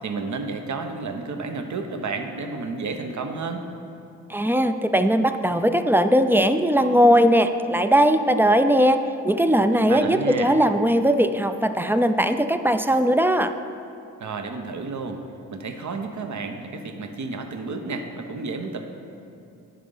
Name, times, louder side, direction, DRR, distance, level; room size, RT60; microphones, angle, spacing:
voice 1, 0.0-3.7 9.7-10.5 14.2-15.2 15.5-18.9, right 3 dB, 50° right, 6 dB, 0.9 m, -31 dB
voice 2, 4.3-9.0 9.2-13.5, equal, 5° right, 9 dB, 0.4 m, -19 dB
10.5 x 3.8 x 5.5 m, 2.7 s
hypercardioid pair, 40°, 37 cm